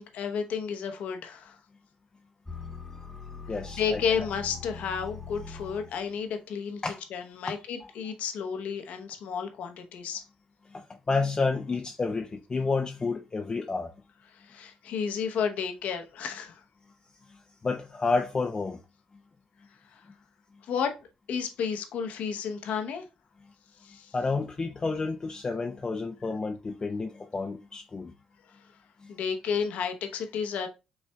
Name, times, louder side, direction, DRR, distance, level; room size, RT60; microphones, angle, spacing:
voice 1, 0.0-1.6 3.8-6.8 7.1-10.2 14.3-16.6 19.9-20.0 20.6-21.0 21.3-23.0 23.8-24.1 29.1-30.7, left 6 dB, 70° left, 0.8 m, -32 dB
sound 1, 2.5-6.2, left 5 dB, 15° left, 1.1 m, -42 dB
voice 2, 3.5-4.0 6.8-7.0 7.5-7.6 7.8-7.9 10.7-13.9 17.3-18.8 24.1-28.1 29.0-29.1, left 4 dB, 30° left, 0.5 m, -30 dB
5.4 x 3.3 x 2.2 m
supercardioid pair, 60°, 3 cm